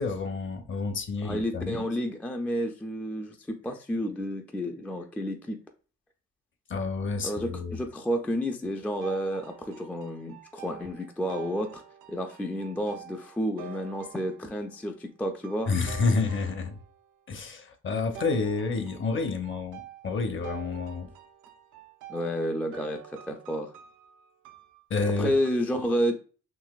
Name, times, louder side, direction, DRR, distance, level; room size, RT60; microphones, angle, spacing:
voice 1, 0.0-1.8 6.7-7.8 15.7-16.8 17.3-21.1 24.9-25.3, left 4 dB, 40° left, 0.7 m, -29 dB
voice 2, 1.2-5.6 7.2-11.8 12.1-15.7 22.1-23.7 25.2-26.2, equal, 5° left, 0.3 m, -30 dB
sound 1, 9.0-14.8 15.4-17.1 18.1-25.5, right 10 dB, 85° right, 0.5 m, -47 dB
3.9 x 2.5 x 2.3 m
cardioid pair, 90°, 30 cm